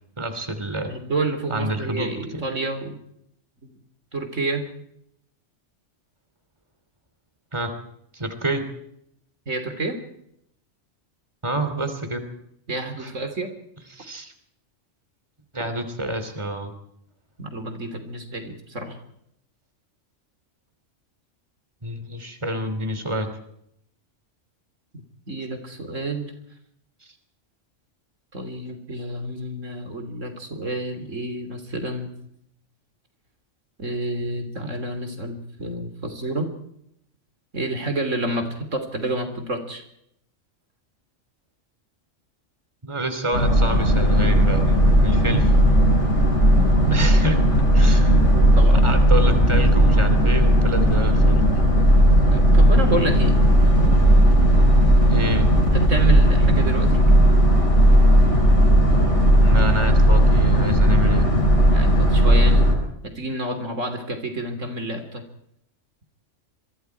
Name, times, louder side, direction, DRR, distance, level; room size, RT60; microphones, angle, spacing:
voice 1, 0.2-0.9 1.5-2.4 7.5-7.8 8.1-8.6 11.4-12.2 13.0-13.1 13.9-14.3 15.5-16.7 21.8-23.3 42.8-44.7 45.0-45.4 46.9-47.4 47.7-48.2 48.8-51.4 55.1-55.5 59.4-61.2, right 1 dB, 20° right, 8 dB, 3.1 m, -28 dB
voice 2, 0.8-3.0 4.1-4.6 9.5-10.0 12.7-13.5 17.4-19.0 25.3-26.3 28.3-32.1 33.8-36.5 37.5-39.8 45.3-45.4 46.5-47.1 48.3-48.9 52.3-53.4 55.6-57.1 61.7-62.7 63.0-65.2, right 2 dB, 80° right, 7 dB, 3.5 m, -29 dB
Boat Water vehicle, 43.3-62.8, equal, 70° left, 7.5 m, -16 dB
27.5 x 23.0 x 4.7 m, 0.74 s
omnidirectional pair, 1.3 m